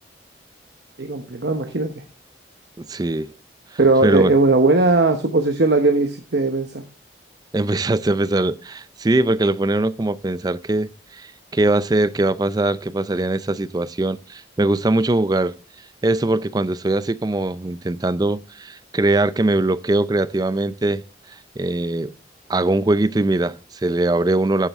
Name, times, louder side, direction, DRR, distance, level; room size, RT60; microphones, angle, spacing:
voice 1, 1.0-1.9 3.8-6.8, right 3 dB, 65° right, 1.0 m, -18 dB
voice 2, 2.8-3.3 4.0-4.3 7.5-15.5 16.0-21.0 21.6-22.1 22.5-24.7, right 2 dB, 20° right, 0.4 m, -21 dB
11.5 x 7.2 x 3.5 m
head